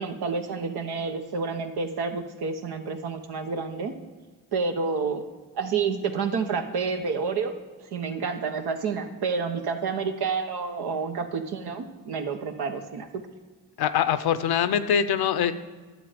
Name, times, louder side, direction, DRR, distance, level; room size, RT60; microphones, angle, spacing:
voice 1, 0.0-3.9 4.5-5.2 5.6-7.5 7.9-13.1, right 5 dB, 75° right, 5 dB, 1.1 m, -29 dB
voice 2, 13.8-15.5, left 8 dB, 70° left, 12 dB, 0.7 m, -23 dB
11.0 x 7.5 x 5.1 m, 1.4 s
supercardioid pair, 50°, 39 cm